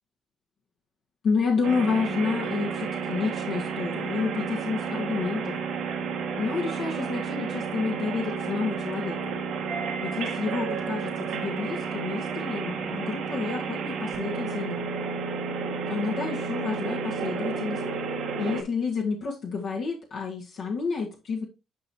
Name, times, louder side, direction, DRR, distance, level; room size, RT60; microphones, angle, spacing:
voice 1, 1.2-5.6 6.4-9.3 10.0-14.8 15.9-17.8 18.4-21.4, left 5 dB, 65° left, -1 dB, 1.7 m, -30 dB
sound 1, 1.6-18.6, right 5 dB, 85° right, 1.9 m, -31 dB
10.5 x 4.7 x 2.9 m, 0.26 s
cardioid pair, 90°, 0 cm